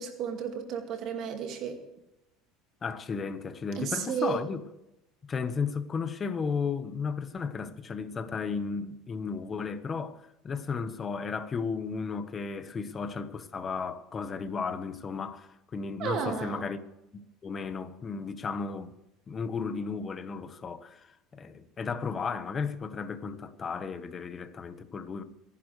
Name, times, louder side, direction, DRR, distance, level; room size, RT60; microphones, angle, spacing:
voice 1, 0.0-1.8 3.8-4.4 16.0-16.7, right 7 dB, 50° right, 2.2 m, -33 dB
voice 2, 2.8-4.6 5.2-16.8 17.4-19.0 19.3-25.2, left 5 dB, 25° left, 1.3 m, -34 dB
26.0 x 11.0 x 3.3 m
cardioid pair, 130°, 0 cm